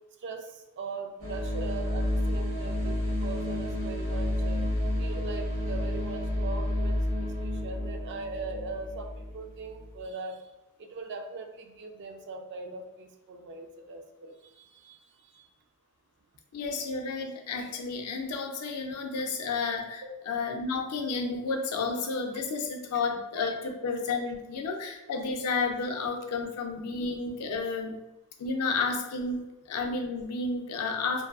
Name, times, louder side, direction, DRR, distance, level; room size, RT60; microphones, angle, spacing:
voice 1, 0.2-4.6 5.0-6.9 7.2-10.4 10.9-15.0 15.3-15.4 20.0-20.1, right 3 dB, 55° right, 5 dB, 0.4 m, -40 dB
sound 1, 1.2-9.9, left 1 dB, 80° right, 1.2 m, -30 dB
voice 2, 16.5-28.0 28.4-31.3, left 4 dB, 80° left, 4 dB, 0.4 m, -31 dB
2.6 x 2.3 x 2.3 m, 1.0 s
head